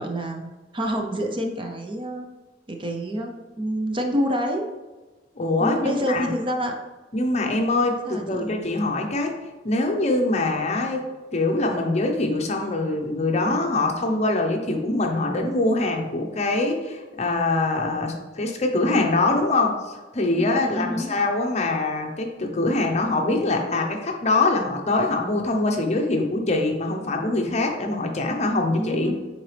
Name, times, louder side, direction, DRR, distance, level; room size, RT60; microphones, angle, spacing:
voice 1, 0.0-2.3 2.7-4.6 5.6-6.7 7.4-7.6 8.1-8.5 20.4-21.1 28.7-29.2, equal, 30° right, 3 dB, 0.6 m, -28 dB
voice 2, 5.4-6.3 7.1-9.4 9.6-11.0 11.3-29.1, left 2 dB, 35° left, 3 dB, 0.7 m, -23 dB
7.8 x 4.0 x 3.3 m, 1.2 s
head